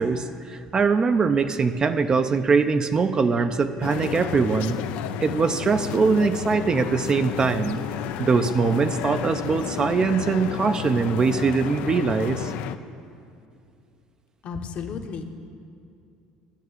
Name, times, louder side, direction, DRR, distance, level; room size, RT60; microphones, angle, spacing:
voice 1, 0.0-4.8 5.2-7.8 8.2-12.5, right 5 dB, 30° right, 9 dB, 0.5 m, -22 dB
sound 1, 3.8-12.8, left 10 dB, 75° left, 0.5 m, -32 dB
voice 2, 14.4-15.2, left 6 dB, 50° left, 6 dB, 1.1 m, -33 dB
12.0 x 6.7 x 7.8 m, 2.5 s
cardioid pair, 110°, 3 cm